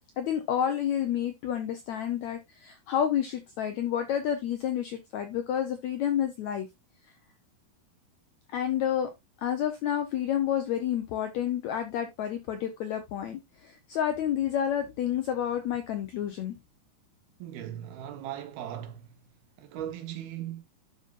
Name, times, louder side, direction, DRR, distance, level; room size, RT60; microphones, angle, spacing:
voice 1, 0.2-6.7 8.5-9.1 9.4-16.6, left 9 dB, 80° left, 1.6 m, -29 dB
voice 2, 17.4-19.2 19.6-20.6, right 11 dB, 85° right, 3.1 m, -38 dB
12.0 x 5.3 x 2.5 m
omnidirectional pair, 4.3 m